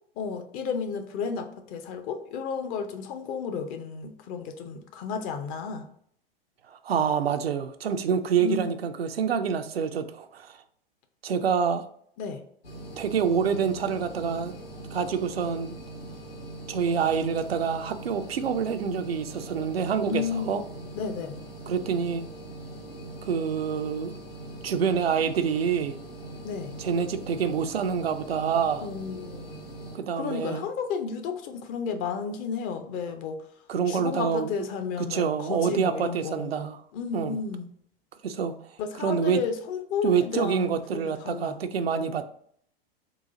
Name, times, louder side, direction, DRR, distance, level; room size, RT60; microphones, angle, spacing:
voice 1, 0.2-5.9 8.4-8.8 12.2-12.4 20.1-20.6 20.9-21.3 26.4-26.8 28.8-29.6 30.1-33.4 33.9-36.7 36.9-37.7 38.8-41.6 42.0-42.2, left 6 dB, 30° left, 0.4 m, -32 dB
voice 2, 6.7-10.6 11.2-11.8 13.0-14.5 14.9-15.7 16.7-20.6 21.7-22.2 23.2-24.1 24.6-26.0 26.8-28.9 29.9-30.6 33.7-34.5 35.1-36.8 37.1-37.4 38.2-38.5 39.0-39.4 40.0-42.2, right 7 dB, 80° right, 0.5 m, -27 dB
sound 1, 12.6-30.0, right 1 dB, 80° left, 1.0 m, -42 dB
3.9 x 2.4 x 3.8 m
figure-of-eight pair, 95°, 30 cm